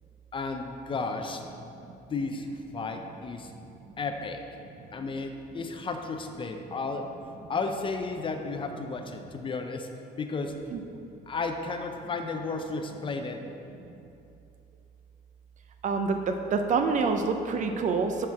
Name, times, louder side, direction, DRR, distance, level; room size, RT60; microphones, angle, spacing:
voice 1, 0.3-3.5 4.0-4.4 4.9-7.1 7.5-9.9 10.2-10.5 11.3-13.4, left 3 dB, 30° left, 5 dB, 0.5 m, -33 dB
voice 2, 15.8-18.3, right 4 dB, 45° right, 6 dB, 0.5 m, -26 dB
6.3 x 4.3 x 4.7 m, 2.8 s
cardioid pair, 110°, 17 cm